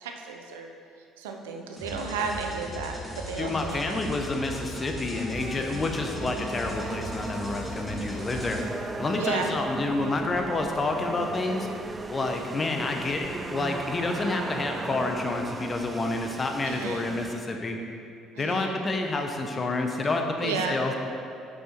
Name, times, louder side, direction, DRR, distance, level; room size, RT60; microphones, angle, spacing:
voice 1, 0.0-0.7 1.2-4.0 9.2-9.5 16.6-17.1 18.3-18.8 20.4-20.8, right 5 dB, 90° right, 3 dB, 0.6 m, -33 dB
sound 1, 1.8-8.6, left 1 dB, 15° left, 1.6 m, -39 dB
voice 2, 3.4-8.6 9.0-11.7 12.1-17.8 18.4-20.9, left 2 dB, 35° left, 3 dB, 0.9 m, -29 dB
sound 2, 4.3-13.5, left 1 dB, 70° left, 1.2 m, -46 dB
sound 3, 5.3-17.4, right 2 dB, 25° right, 0.4 m, -37 dB
6.1 x 5.5 x 4.5 m, 2.6 s
hypercardioid pair, 65°, 0 cm